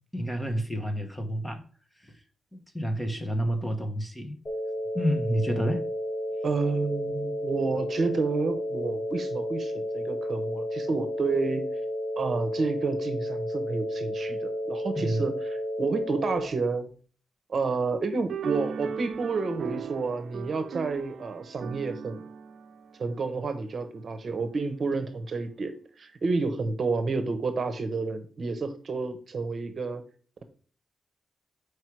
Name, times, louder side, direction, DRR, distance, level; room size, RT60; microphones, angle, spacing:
voice 1, 0.1-1.6 2.0-2.2 2.5-4.4 4.9-5.9 14.9-15.3, equal, 5° left, 1.1 m, -29 dB
sound 1, 4.4-16.4, equal, 40° left, 3.8 m, -32 dB
voice 2, 6.4-11.7 12.2-16.9 17.5-22.2 23.0-30.0, right 4 dB, 45° right, 1.0 m, -30 dB
sound 2, 18.3-23.9, right 7 dB, 80° right, 0.6 m, -38 dB
7.4 x 4.9 x 4.7 m
wide cardioid pair, 135°, 0 cm